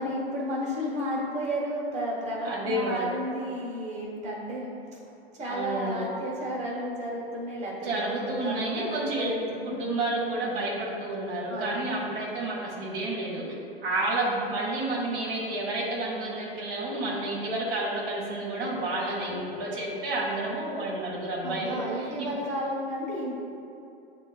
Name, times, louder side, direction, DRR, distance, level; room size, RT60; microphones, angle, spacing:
voice 1, 0.0-4.7 5.3-9.8 11.5-11.9 21.4-23.3, equal, 25° right, -5 dB, 1.0 m, -32 dB
voice 2, 2.4-3.1 5.4-6.1 7.8-9.4 9.6-13.4 13.8-22.3, right 2 dB, 60° right, -4 dB, 0.9 m, -30 dB
6.6 x 2.3 x 2.4 m, 2.8 s
hypercardioid pair, 105°, 30 cm